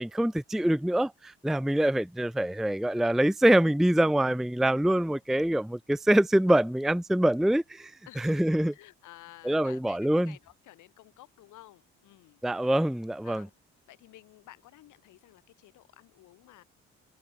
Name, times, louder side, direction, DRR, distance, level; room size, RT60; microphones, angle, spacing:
voice 1, 0.0-7.9 8.2-8.7 9.4-10.3 12.4-13.5, right 1 dB, ahead, 0.5 m, -25 dB
voice 2, 8.1-12.7 13.2-13.5 13.9-16.6, left 16 dB, 80° left, 7.3 m, -53 dB
supercardioid pair, 65°, 30 cm